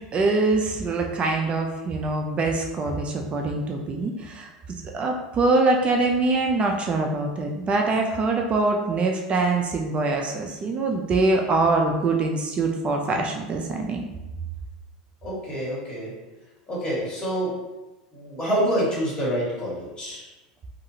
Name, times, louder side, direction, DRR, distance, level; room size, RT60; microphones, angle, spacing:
voice 1, 0.1-4.5 4.9-14.1, right 3 dB, 30° right, 2 dB, 0.3 m, -24 dB
voice 2, 15.2-16.1 16.7-17.5 18.1-20.2, equal, 20° left, -7 dB, 1.4 m, -27 dB
2.5 x 2.4 x 2.7 m, 1.1 s
hypercardioid pair, 100°, 4 cm